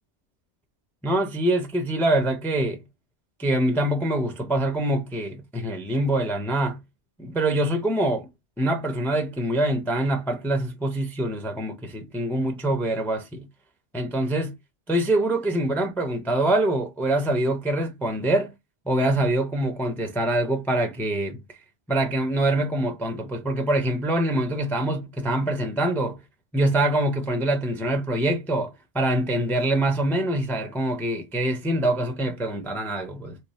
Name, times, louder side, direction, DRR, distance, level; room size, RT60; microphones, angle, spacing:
voice 1, 1.0-2.8 3.4-6.8 7.2-8.3 8.6-13.5 13.9-14.6 14.9-18.5 18.9-21.4 21.9-26.2 26.5-33.4, right 1 dB, 5° left, 0.3 m, -24 dB
3.2 x 2.1 x 3.9 m
omnidirectional pair, 1.2 m